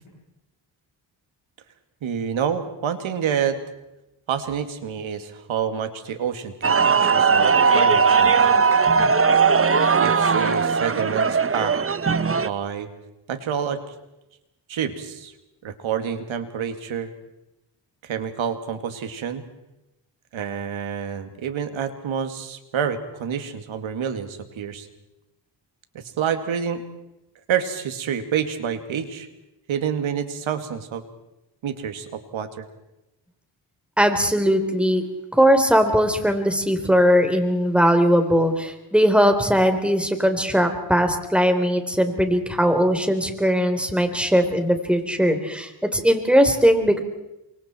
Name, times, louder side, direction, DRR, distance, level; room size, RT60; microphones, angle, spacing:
voice 1, 2.0-3.6 4.3-8.5 10.0-11.8 12.4-12.9 13.3-13.8 14.7-15.3 15.6-17.1 18.0-19.4 20.3-24.9 25.9-26.8 27.5-29.3 29.7-31.0 31.6-32.7, right 8 dB, 90° right, 8 dB, 2.4 m, -28 dB
sound 1, 6.6-12.5, right 5 dB, 30° right, 1.0 m, -18 dB
voice 2, 34.0-35.0 35.3-47.0, equal, ahead, 6 dB, 4.0 m, -19 dB
28.0 x 24.5 x 4.5 m, 0.92 s
cardioid pair, 80°, 46 cm